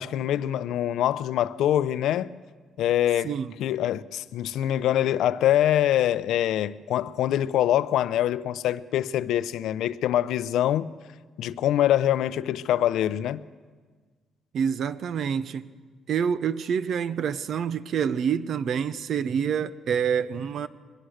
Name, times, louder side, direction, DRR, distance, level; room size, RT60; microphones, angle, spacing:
voice 1, 0.0-2.3 2.8-3.3 3.6-10.9 11.4-13.4, left 12 dB, 85° left, 0.6 m, -24 dB
voice 2, 14.5-15.7 16.1-20.7, right 7 dB, 60° right, 0.8 m, -27 dB
22.0 x 21.0 x 6.5 m
cardioid pair, 115°, 0 cm